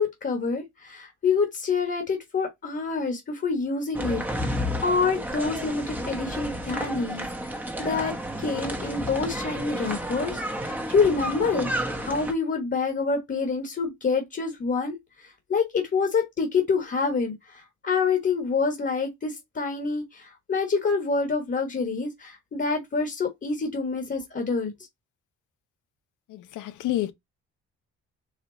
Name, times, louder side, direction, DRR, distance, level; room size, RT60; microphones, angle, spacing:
voice 1, 0.0-24.7, left 4 dB, 35° left, 1.4 m, -27 dB
sound 1, 3.9-12.3, equal, 5° right, 0.9 m, -31 dB
voice 2, 26.3-27.1, left 14 dB, 80° left, 0.7 m, -29 dB
4.5 x 2.3 x 3.9 m
cardioid pair, 90°, 30 cm